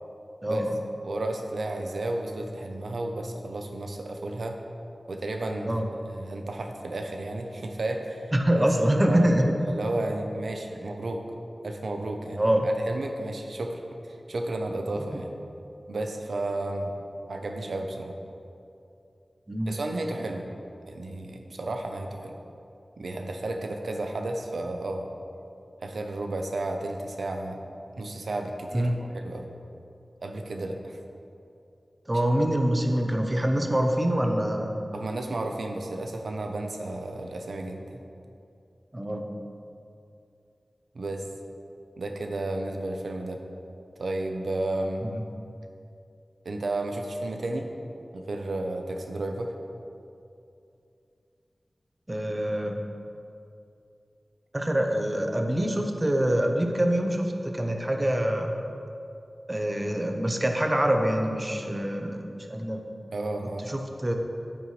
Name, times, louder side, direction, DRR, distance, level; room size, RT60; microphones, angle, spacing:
voice 1, 0.4-0.7 5.7-5.8 8.3-9.5 12.4-12.7 19.5-19.7 28.7-29.0 32.1-34.8 38.9-39.3 45.0-45.2 52.1-52.8 54.5-58.5 59.5-62.8 63.7-64.1, right 1 dB, 20° right, 3 dB, 0.8 m, -25 dB
voice 2, 1.0-4.6 5.1-5.8 6.1-8.6 9.0-9.3 9.7-11.2 11.6-13.8 14.1-15.3 15.9-16.9 17.3-18.1 19.7-20.5 20.9-22.3 23.0-25.1 25.8-27.6 28.0-29.4 30.2-31.0 34.9-38.0 40.9-41.2 42.0-43.4 44.0-45.0 46.4-47.7 48.1-49.5 63.1-63.7, right 2 dB, 85° right, 4 dB, 0.7 m, -32 dB
9.1 x 8.7 x 3.2 m, 2.6 s
wide cardioid pair, 85°, 0 cm